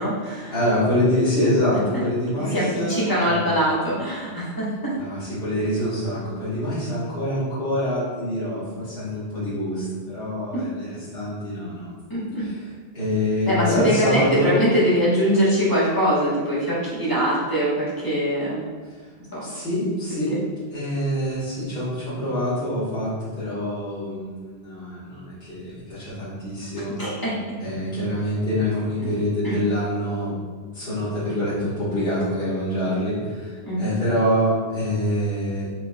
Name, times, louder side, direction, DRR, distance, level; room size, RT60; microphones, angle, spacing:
voice 1, 0.0-0.5 2.5-4.9 10.5-10.6 12.1-12.4 13.4-18.6 19.3-19.4 20.3-20.4 27.0-27.3 29.0-29.1 29.4-29.6 33.6-33.9, equal, 20° left, -8 dB, 1.4 m, -22 dB
voice 2, 0.5-3.7 4.9-10.9 11.1-11.9 12.4-12.6 12.9-14.5 18.9-19.0 19.4-20.4 20.7-27.0 27.6-30.3 30.7-35.7, equal, 60° left, -14 dB, 1.9 m, -25 dB
4.6 x 4.4 x 2.4 m, 1.5 s
omnidirectional pair, 1.1 m